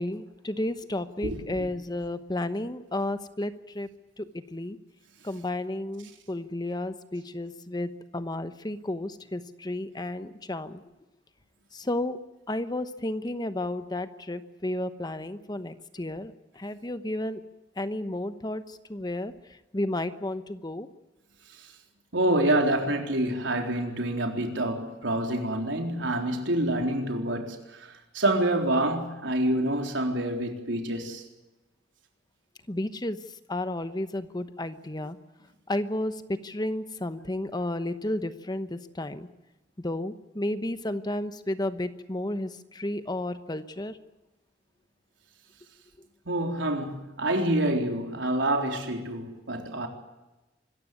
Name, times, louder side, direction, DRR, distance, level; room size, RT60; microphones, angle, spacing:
voice 1, 0.0-3.9 4.2-4.8 5.2-10.8 11.7-12.2 12.5-17.4 17.8-19.3 19.7-20.9 32.7-33.2 33.5-35.2 35.7-39.3 39.8-44.0, left 1 dB, 20° left, 1.0 m, -32 dB
voice 2, 1.2-1.7 22.1-27.6 28.1-31.2 46.3-49.9, right 1 dB, 80° right, 4.0 m, -27 dB
25.5 x 14.5 x 9.6 m
head